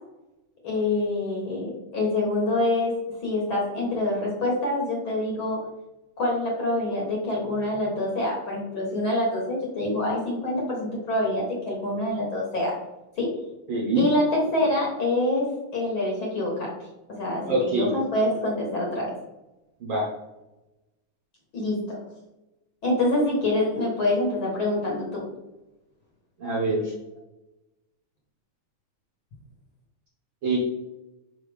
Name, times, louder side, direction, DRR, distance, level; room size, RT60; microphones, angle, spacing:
voice 1, 0.6-2.9 3.2-5.6 6.2-12.7 13.2-13.3 13.9-16.7 17.2-17.5 17.7-19.1 21.5-22.0 22.8-25.2, left 1 dB, 50° left, -3 dB, 1.7 m, -26 dB
voice 2, 13.7-14.0 17.5-17.9 19.8-20.1 26.4-26.9 30.4-30.6, right 2 dB, 55° right, -4 dB, 1.4 m, -24 dB
5.9 x 4.9 x 3.4 m, 0.99 s
omnidirectional pair, 3.5 m